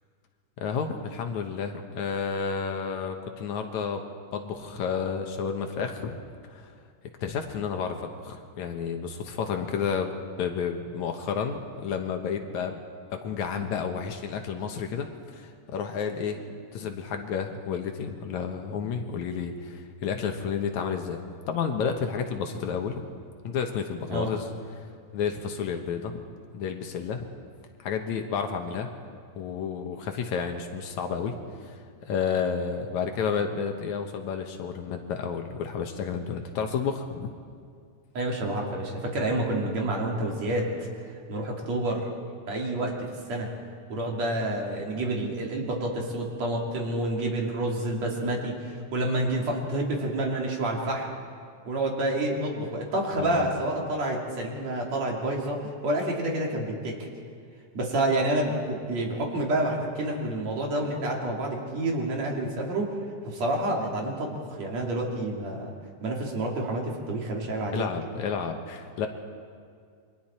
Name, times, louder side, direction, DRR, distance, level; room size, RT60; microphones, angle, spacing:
voice 1, 0.6-4.0 4.3-6.2 6.5-6.7 7.2-10.1 10.4-12.8 13.1-16.4 16.7-21.2 21.5-23.0 23.4-24.5 25.1-26.2 26.5-27.3 27.8-28.9 29.4-31.3 31.6-37.3 53.2-53.5 67.7-69.1, left 6 dB, 70° left, 5 dB, 2.4 m, -31 dB
voice 2, 38.1-40.9 41.3-42.1 42.5-42.9 43.3-43.5 43.9-51.1 51.7-57.1 57.7-63.0 63.2-65.7 66.0-67.9, right 1 dB, 55° right, -1 dB, 3.7 m, -28 dB
28.5 x 23.5 x 4.4 m, 2.2 s
omnidirectional pair, 3.7 m